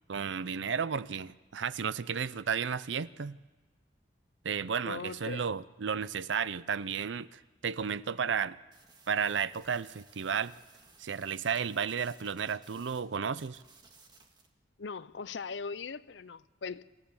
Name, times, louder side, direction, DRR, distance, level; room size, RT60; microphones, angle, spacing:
voice 1, 0.1-3.4 4.4-8.6 9.1-10.5 11.0-13.6, right 6 dB, 85° right, 0.5 m, -33 dB
voice 2, 4.8-5.4 14.8-16.8, left 5 dB, 80° left, 0.6 m, -39 dB
sound 1, 8.7-13.0 13.3-14.5, right 4 dB, 25° right, 1.7 m, -60 dB
27.5 x 14.5 x 7.1 m
head